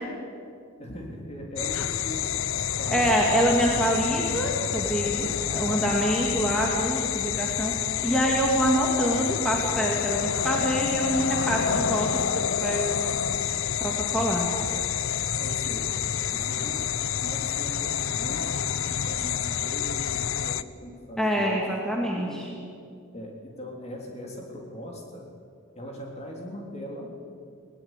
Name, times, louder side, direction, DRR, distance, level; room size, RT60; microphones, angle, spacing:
voice 1, 0.8-2.3 2.8-3.3 5.5-6.0 11.7-12.0 15.4-21.5 22.0-22.4 23.1-25.2 25.8-27.1, equal, 30° left, 0 dB, 3.5 m, -40 dB
sound 1, 1.6-20.6, left 8 dB, 70° left, 0.6 m, -28 dB
voice 2, 2.9-7.7 8.0-10.2 10.4-12.1 12.6-13.0 13.8-14.5 21.2-22.5, right 1 dB, 5° left, -2 dB, 2.3 m, -25 dB
21.0 x 18.5 x 9.2 m, 2.3 s
head